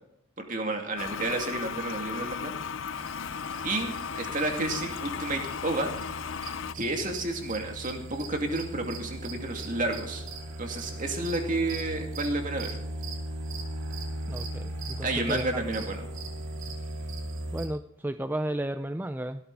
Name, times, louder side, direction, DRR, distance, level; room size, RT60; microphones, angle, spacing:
voice 1, 0.4-2.5 3.6-5.9 6.7-10.2 10.6-12.8 15.0-16.1, right 2 dB, 40° right, 3 dB, 2.6 m, -31 dB
Toilet flush, 1.0-6.7, left 6 dB, 60° left, 0.5 m, -36 dB
sound 1, 2.9-17.7, right 1 dB, 65° right, 2.7 m, -38 dB
voice 2, 14.3-15.6 17.5-19.4, right 1 dB, 10° right, 9 dB, 0.4 m, -33 dB
16.0 x 13.0 x 4.1 m, 0.75 s
head